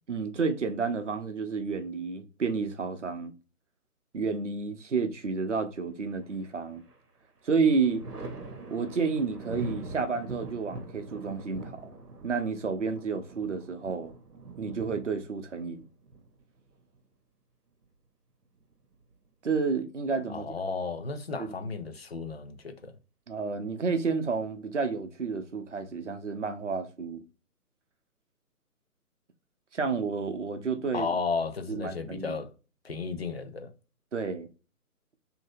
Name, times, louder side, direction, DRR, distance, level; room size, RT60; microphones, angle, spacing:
voice 1, 0.1-3.3 4.1-6.8 7.4-8.0 8.7-11.9 12.2-14.1 14.6-15.8 19.4-20.5 21.4-21.5 23.3-27.2 29.7-31.1 31.7-32.4 34.1-34.5, right 5 dB, 50° right, 0.6 m, -30 dB
Thunder, 6.2-7.0 7.4-17.0 18.4-19.3, right 2 dB, 85° right, 0.9 m, -43 dB
voice 2, 20.3-22.9 30.9-32.5 32.8-33.7, left 4 dB, 45° left, 0.4 m, -33 dB
2.8 x 2.6 x 2.6 m
figure-of-eight pair, 140°, 46 cm